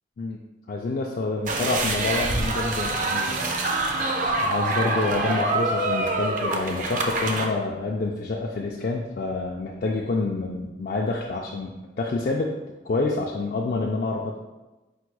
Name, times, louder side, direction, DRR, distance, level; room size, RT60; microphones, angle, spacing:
voice 1, 0.7-3.3 4.4-12.5 12.8-14.4, left 3 dB, 50° left, -1 dB, 0.3 m, -27 dB
sound 1, 1.5-7.4, right 2 dB, 45° right, 0.5 m, -25 dB
4.4 x 2.2 x 4.6 m, 1.1 s
head